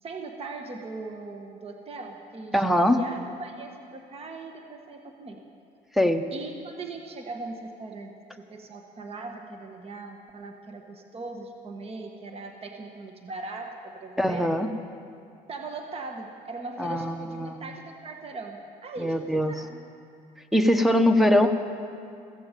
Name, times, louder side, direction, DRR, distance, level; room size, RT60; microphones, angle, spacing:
voice 1, 0.0-5.4 6.3-14.6 15.5-19.8 21.0-21.3, right 3 dB, 35° right, 3 dB, 1.3 m, -39 dB
voice 2, 2.5-3.0 5.9-6.2 14.2-14.7 16.8-17.6 19.0-19.5 20.5-21.6, left 1 dB, ahead, 8 dB, 0.8 m, -22 dB
15.0 x 15.0 x 5.2 m, 2.5 s
cardioid pair, 110°, 17 cm